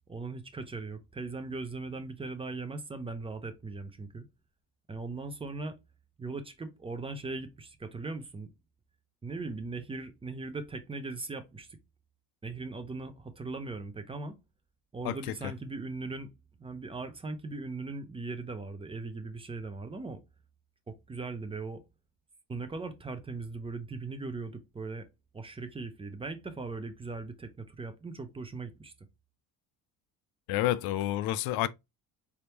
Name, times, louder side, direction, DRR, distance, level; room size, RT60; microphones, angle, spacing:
voice 1, 0.1-4.2 4.9-5.8 6.2-8.5 9.2-11.7 12.4-14.4 14.9-16.3 16.6-20.2 20.9-21.8 22.5-25.1 25.3-28.9, right 3 dB, 15° right, 0.7 m, -39 dB
voice 2, 30.5-31.7, left 14 dB, 70° left, 0.5 m, -29 dB
4.4 x 3.5 x 2.9 m
cardioid pair, 135°, 39 cm